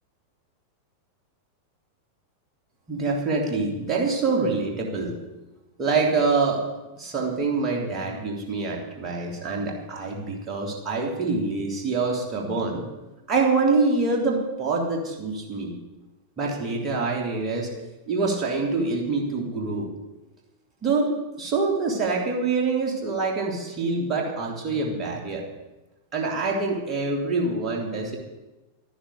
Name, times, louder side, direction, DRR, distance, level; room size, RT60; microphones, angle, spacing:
voice 1, 2.9-5.2 5.8-6.6 7.0-12.8 13.3-15.8 16.4-17.7 18.1-19.9 20.8-25.4 26.1-28.2, right 3 dB, 30° right, -1 dB, 3.2 m, -25 dB
13.0 x 10.5 x 6.8 m, 1.1 s
figure-of-eight pair, 90°, 0 cm